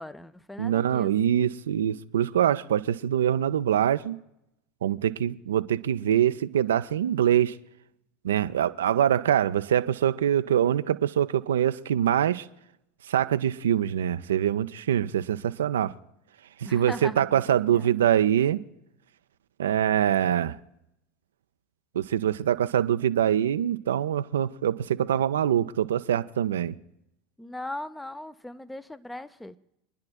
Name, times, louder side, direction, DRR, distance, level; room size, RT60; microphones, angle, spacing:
voice 1, 0.0-1.1 16.6-17.9 27.4-29.6, left 1 dB, 5° left, 0.6 m, -39 dB
voice 2, 0.6-4.2 4.8-7.6 8.2-12.5 13.1-15.9 16.6-18.6 19.6-20.6 21.9-26.8, right 10 dB, 70° right, 0.4 m, -24 dB
27.0 x 10.5 x 2.3 m
figure-of-eight pair, 80°, 0 cm